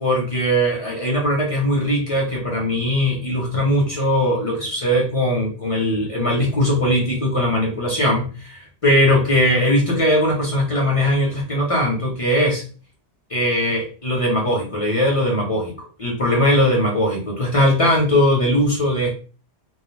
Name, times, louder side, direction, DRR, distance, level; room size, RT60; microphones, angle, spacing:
voice 1, 0.0-12.6 13.3-19.1, equal, 35° left, -2 dB, 0.6 m, -20 dB
2.2 x 2.1 x 3.1 m, 0.37 s
omnidirectional pair, 1.2 m